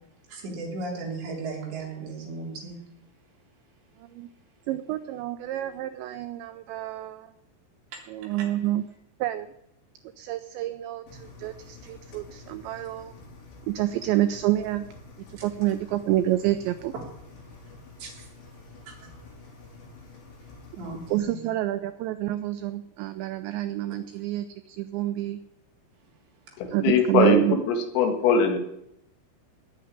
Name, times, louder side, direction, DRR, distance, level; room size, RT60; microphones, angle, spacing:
voice 1, 0.3-2.8 7.9-8.0 8.4-8.5 15.4-15.5 18.0-18.3 18.9-19.1 20.8-21.4, right 3 dB, 60° right, -1 dB, 5.6 m, -36 dB
voice 2, 4.7-7.3 8.1-8.8 9.2-9.5 10.2-13.1 13.7-14.9 15.4-16.9 21.1-25.4 26.7-27.6, right 14 dB, 85° right, 10 dB, 2.5 m, -28 dB
Engine, 11.1-21.2, left 3 dB, 55° left, 5.4 m, -48 dB
voice 3, 26.6-28.6, left 5 dB, 80° left, 5 dB, 4.5 m, -22 dB
19.5 x 6.9 x 9.9 m, 0.81 s
omnidirectional pair, 5.9 m